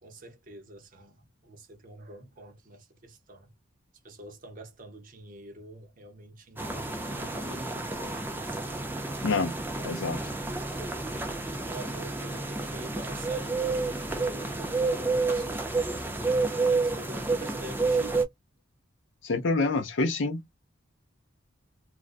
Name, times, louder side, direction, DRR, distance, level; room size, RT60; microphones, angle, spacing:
voice 1, 0.0-1.2 1.4-3.5 4.0-8.7 11.7-13.8 14.0-15.8 16.5-18.3, right 1 dB, 40° right, 0.7 m, -46 dB
sound 1, 6.6-18.2, right 3 dB, 10° right, 0.4 m, -30 dB
voice 2, 9.8-10.2 19.2-20.4, left 3 dB, 65° left, 0.5 m, -27 dB
2.4 x 2.1 x 2.3 m
head